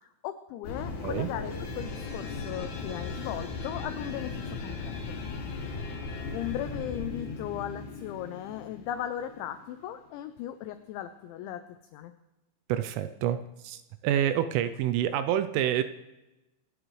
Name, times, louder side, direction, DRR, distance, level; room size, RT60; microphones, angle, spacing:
voice 1, 0.2-5.2 6.3-12.1, left 11 dB, 90° left, 9 dB, 2.6 m, -37 dB
sound 1, 0.6-9.9, left 4 dB, 60° left, 4.0 m, -37 dB
voice 2, 12.7-13.4 13.6-13.8 14.0-15.8, right 11 dB, 85° right, 10 dB, 3.0 m, -27 dB
25.0 x 10.0 x 3.2 m, 1.0 s
omnidirectional pair, 6.0 m